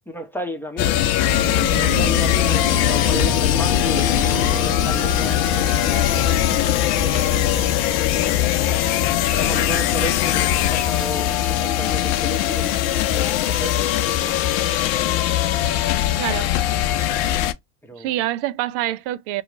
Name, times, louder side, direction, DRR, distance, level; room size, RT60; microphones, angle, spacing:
voice 1, 0.1-1.1 1.4-4.1 4.5-5.5 7.1-8.5 9.3-15.1 17.8-18.2, equal, 5° left, 0.9 m, -34 dB
sound 1, 0.8-17.5, left 12 dB, 60° left, 0.6 m, -20 dB
sound 2, 1.3-7.8, right 5 dB, 25° right, 1.1 m, -33 dB
voice 2, 16.2-16.5 18.0-19.4, right 14 dB, 60° right, 0.5 m, -26 dB
2.8 x 2.3 x 3.8 m
hypercardioid pair, 75°, 45 cm